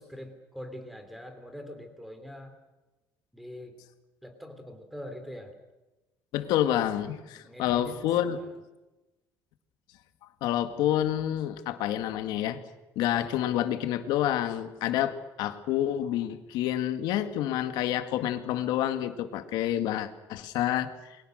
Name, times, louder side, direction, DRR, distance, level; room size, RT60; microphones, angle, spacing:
voice 1, 0.0-2.6 3.3-3.8 4.2-5.5 7.3-8.0 8.3-8.5, equal, ahead, 8 dB, 3.2 m, -43 dB
voice 2, 6.3-8.4 10.4-12.6 13.0-20.9, left 12 dB, 75° left, 8 dB, 2.1 m, -28 dB
29.5 x 23.0 x 6.5 m, 1.1 s
cardioid pair, 170°, 7 cm